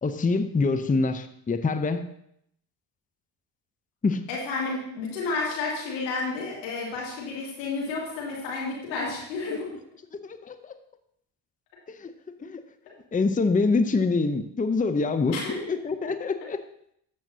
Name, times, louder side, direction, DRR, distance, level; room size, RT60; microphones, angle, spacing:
voice 1, 0.0-2.1 4.0-4.2 10.2-10.8 11.9-12.1 12.4-12.6 13.1-16.6, left 3 dB, 15° left, 10 dB, 0.7 m, -25 dB
voice 2, 4.3-9.6 15.3-15.6, left 3 dB, 85° left, -4 dB, 2.7 m, -31 dB
13.0 x 7.5 x 2.8 m, 0.72 s
hypercardioid pair, 50°, 50 cm